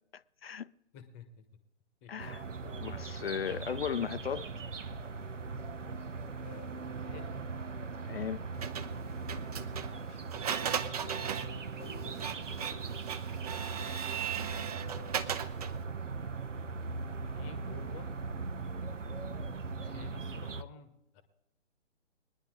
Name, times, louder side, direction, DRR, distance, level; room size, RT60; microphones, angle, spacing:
voice 1, 0.1-0.7 2.1-2.4 2.8-4.5 8.0-8.4, left 8 dB, 55° left, 0.5 m, -36 dB
voice 2, 0.9-1.4 2.0-2.3 2.6-2.8 6.4-7.4 9.9-10.2 11.0-13.3 14.5-15.5 17.3-18.1 19.8-21.2, left 7 dB, 15° left, 1.2 m, -53 dB
sound 1, 2.2-20.6, right 4 dB, 80° right, 0.9 m, -39 dB
Printer, 8.6-15.8, right 8 dB, 30° right, 0.9 m, -37 dB
21.0 x 10.5 x 3.7 m
figure-of-eight pair, 135°, 36 cm